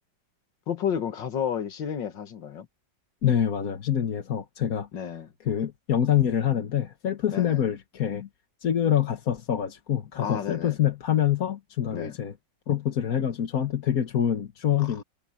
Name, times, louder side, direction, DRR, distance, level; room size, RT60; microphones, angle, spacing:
voice 1, 0.7-2.7 4.9-5.3 7.3-7.6 10.2-10.8 11.9-12.2, left 8 dB, 80° left, 2.2 m, -31 dB
voice 2, 3.2-4.9 5.4-8.3 8.6-12.3 12.7-15.0, left 10 dB, 55° left, 1.6 m, -26 dB
omnidirectional pair, 2.0 m